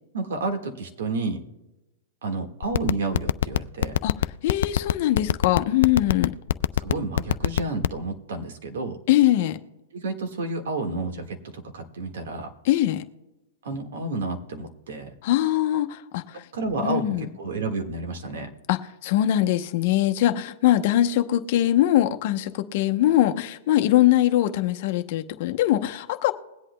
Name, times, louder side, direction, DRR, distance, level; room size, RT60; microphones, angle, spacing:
voice 1, 0.1-1.4 2.2-4.0 6.8-9.0 9.9-12.5 13.6-15.2 16.3-18.5, right 3 dB, 75° right, 1.6 m, -30 dB
sound 1, 2.6-8.0, left 10 dB, 75° left, 0.3 m, -20 dB
voice 2, 4.4-6.3 9.1-9.6 12.6-13.0 15.2-16.4 16.8-17.3 18.7-26.3, left 13 dB, 55° left, 0.8 m, -22 dB
21.5 x 8.2 x 2.2 m
hypercardioid pair, 135°, 0 cm